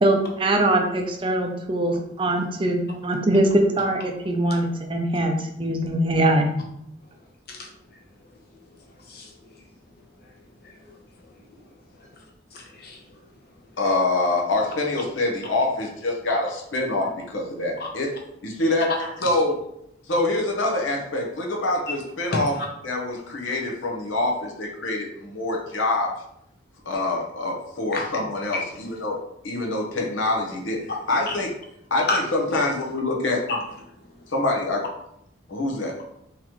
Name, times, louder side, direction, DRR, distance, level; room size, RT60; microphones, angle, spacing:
voice 1, 0.0-6.5, right 1 dB, 25° right, 4 dB, 0.4 m, -22 dB
voice 2, 10.6-11.0 12.5-13.0 17.0-17.1 17.8-17.9 22.6-22.7 27.9-28.1 28.5-28.7 30.9-31.3 32.1-32.2 33.5-33.6 34.2-34.3, left 3 dB, 55° left, -1 dB, 0.8 m, -30 dB
voice 3, 13.8-18.1 18.4-18.9 19.2-19.6 20.1-22.5 22.8-26.1 26.8-29.2 29.4-31.5 31.9-33.4 34.3-34.8 35.5-35.9, left 2 dB, 85° left, 0 dB, 0.9 m, -25 dB
3.8 x 3.0 x 3.0 m, 0.77 s
head